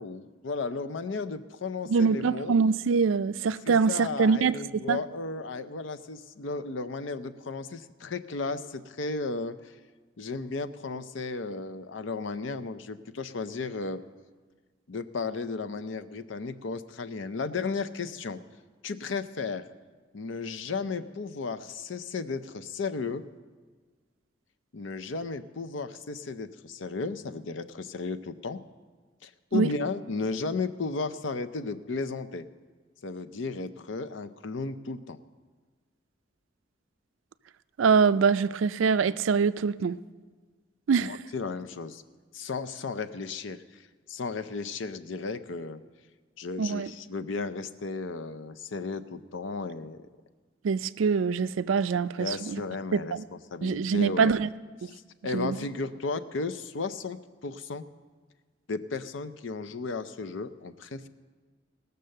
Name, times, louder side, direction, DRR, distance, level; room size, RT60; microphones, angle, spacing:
voice 1, 0.0-2.6 3.7-9.8 10.2-14.0 14.9-18.4 18.8-19.7 20.1-23.2 24.7-28.6 29.2-32.5 33.0-35.2 41.0-42.0 42.3-45.8 46.4-50.1 52.2-53.2 53.5-54.4 55.2-57.9 58.7-61.1, left 4 dB, 75° left, 0.6 m, -34 dB
voice 2, 1.9-5.0 29.5-29.7 37.8-40.0 40.9-41.2 46.6-46.9 50.6-52.6 52.9-53.2 53.6-54.5 54.8-54.9 55.3-55.7, right 5 dB, 85° right, 0.4 m, -24 dB
18.5 x 6.7 x 6.5 m
head